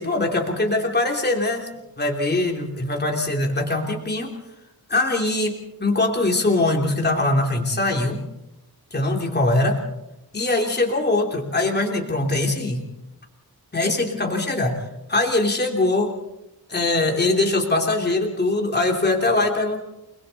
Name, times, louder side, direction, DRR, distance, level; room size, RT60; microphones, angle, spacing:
voice 1, 0.0-1.7 2.0-4.3 4.9-8.2 8.9-9.8 10.3-12.8 13.7-14.8 15.1-16.1 16.7-19.8, left 2 dB, 25° left, 1 dB, 3.0 m, -22 dB
29.5 x 21.5 x 4.1 m, 0.91 s
wide cardioid pair, 170°, 37 cm